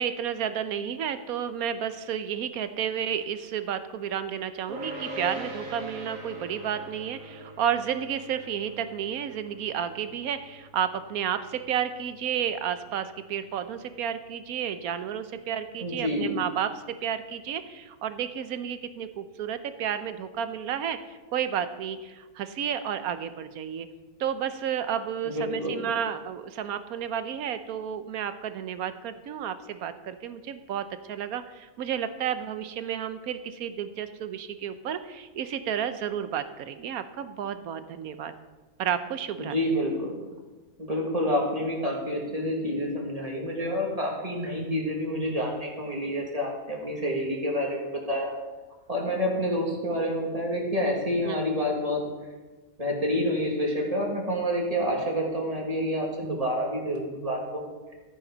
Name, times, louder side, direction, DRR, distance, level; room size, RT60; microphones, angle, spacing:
voice 1, 0.0-16.7 17.0-23.9 24.2-38.3 38.8-39.6 51.2-51.4, right 9 dB, 80° right, 11 dB, 1.2 m, -31 dB
sound 1, 4.7-16.0, right 1 dB, 60° right, 2.1 m, -43 dB
voice 2, 15.8-16.4 25.2-25.8 39.4-40.2 40.8-48.3 48.9-52.0 52.8-57.6, equal, 25° right, -1 dB, 2.2 m, -28 dB
14.5 x 9.6 x 4.0 m, 1.2 s
omnidirectional pair, 1.6 m